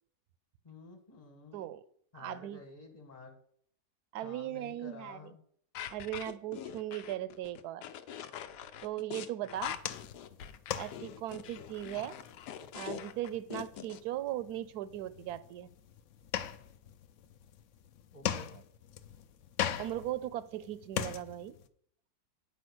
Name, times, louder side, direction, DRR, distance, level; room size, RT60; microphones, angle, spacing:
voice 1, 0.6-1.7 2.1-3.4 4.2-5.4 9.4-9.7 18.1-18.5, left 3 dB, 25° left, 5 dB, 1.5 m, -51 dB
voice 2, 2.1-2.6 4.1-5.3 5.9-7.8 8.8-9.8 10.8-12.2 12.7-15.7 19.8-21.5, right 13 dB, 75° right, 16 dB, 1.1 m, -38 dB
sound 1, 5.7-14.0, left 10 dB, 85° left, 1.2 m, -43 dB
sound 2, 9.6-21.7, left 10 dB, 65° left, 0.8 m, -41 dB
9.4 x 5.0 x 6.1 m, 0.64 s
omnidirectional pair, 1.7 m